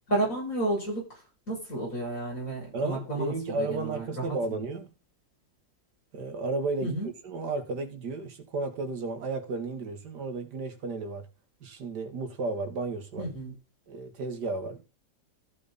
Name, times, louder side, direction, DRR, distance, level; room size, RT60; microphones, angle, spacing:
voice 1, 0.1-1.2 1.5-4.3 6.8-7.1 13.2-13.5, right 2 dB, 45° left, 6.7 m, -31 dB
voice 2, 2.7-4.9 6.1-7.0 7.2-11.2 11.6-13.3 13.9-14.9, right 3 dB, 65° right, 2.2 m, -33 dB
14.0 x 6.3 x 4.1 m
omnidirectional pair, 1.9 m